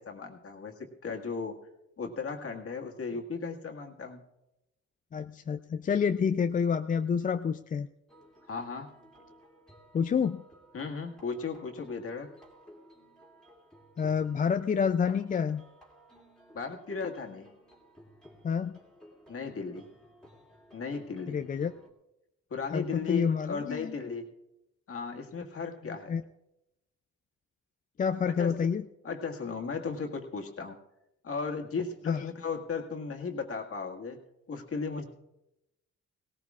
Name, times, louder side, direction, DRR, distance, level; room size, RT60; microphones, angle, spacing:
voice 1, 0.0-1.6 2.0-4.2 8.5-8.9 10.7-12.3 16.5-17.5 19.3-19.9 20.7-21.4 22.5-24.3 24.9-26.2 28.3-28.7 29.0-30.8 31.2-34.2 34.5-35.1, left 5 dB, 50° left, 2 dB, 1.8 m, -36 dB
voice 2, 5.1-7.9 9.9-10.4 14.0-15.6 18.4-18.8 21.3-21.7 22.7-23.9 26.1-26.2 28.0-28.8 32.1-32.2, left 6 dB, 30° left, 8 dB, 0.4 m, -28 dB
sound 1, 8.1-21.9, equal, 5° left, 2.5 m, -57 dB
18.0 x 17.5 x 2.4 m, 0.91 s
cardioid pair, 90°, 30 cm